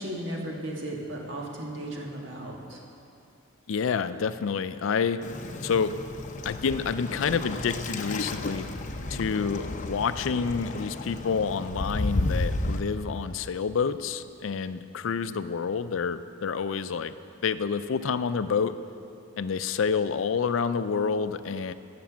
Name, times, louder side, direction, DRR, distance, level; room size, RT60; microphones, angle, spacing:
voice 1, 0.0-2.8, right 1 dB, 65° right, -1 dB, 1.7 m, -35 dB
voice 2, 3.7-5.2 5.6-5.9 6.4-8.7 9.1-17.1 17.4-18.8 19.4-21.7, left 6 dB, 75° left, 12 dB, 0.4 m, -28 dB
Waves surf, 5.2-12.8, left 2 dB, 40° left, 0.7 m, -32 dB
14.5 x 6.0 x 7.2 m, 2.7 s
head